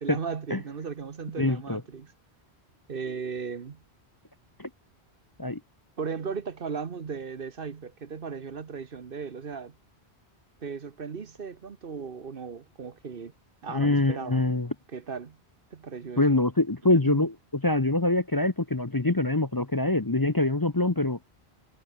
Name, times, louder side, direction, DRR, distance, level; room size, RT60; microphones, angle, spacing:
voice 1, 0.0-2.1 2.9-3.8 6.0-9.7 10.6-13.3 13.6-14.5 14.9-15.4 15.7-16.2 16.9-17.3, right 6 dB, 60° right, 1.2 m, -36 dB
voice 2, 1.4-1.8 4.6-4.7 5.4-5.6 13.7-14.7 16.2-21.2, left 2 dB, 20° left, 0.9 m, -24 dB
omnidirectional pair, 1.1 m